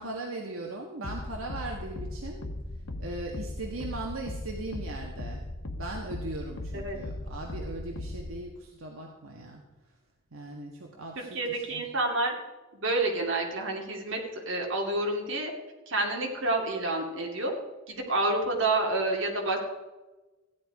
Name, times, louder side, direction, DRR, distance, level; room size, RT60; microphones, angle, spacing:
voice 1, 0.0-2.5 3.0-5.5 5.7-9.6 10.3-11.9, right 2 dB, 85° right, 0 dB, 1.5 m, -39 dB
sound 1, 1.0-8.4, left 1 dB, 85° left, 1.1 m, -38 dB
voice 2, 11.2-12.4 12.7-15.5 15.9-17.5 17.9-19.6, right 2 dB, 70° right, 1 dB, 2.4 m, -29 dB
14.5 x 9.9 x 4.8 m, 1.2 s
head